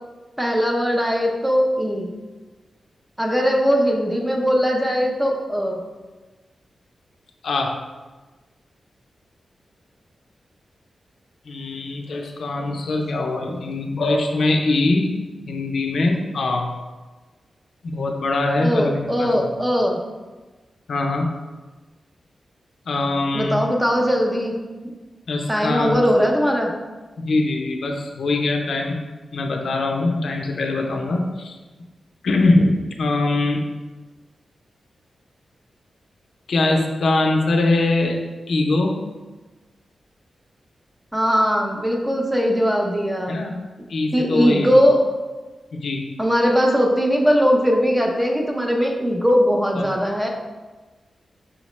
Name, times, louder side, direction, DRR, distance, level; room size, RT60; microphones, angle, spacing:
voice 1, 0.4-2.1 3.2-5.8 18.6-20.0 23.3-24.5 24.8-24.9 25.5-26.7 41.1-43.4 44.1-45.0 46.2-50.3, equal, 10° right, 0 dB, 0.4 m, -20 dB
voice 2, 7.4-7.8 11.4-16.8 17.8-19.6 20.9-21.3 22.9-23.7 25.3-26.0 27.2-29.0 29.3-31.6 32.2-33.6 36.5-39.0 43.3-43.6 43.9-44.7 45.7-46.0 49.7-49.9, left 2 dB, 70° left, 2 dB, 0.5 m, -22 dB
5.6 x 2.1 x 3.0 m, 1.2 s
wide cardioid pair, 140°, 0 cm